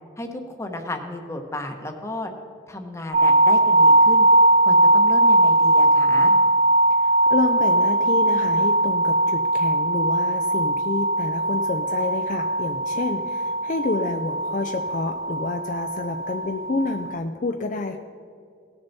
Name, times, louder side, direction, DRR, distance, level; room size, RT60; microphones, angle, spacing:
voice 1, 0.2-2.3 2.7-4.3 4.6-6.3, left 1 dB, 15° left, 4 dB, 1.0 m, -33 dB
sound 1, 3.1-17.2, right 2 dB, 40° right, 0.6 m, -20 dB
voice 2, 7.0-18.0, left 3 dB, 45° left, 5 dB, 0.5 m, -28 dB
18.0 x 6.8 x 4.1 m, 2.3 s
head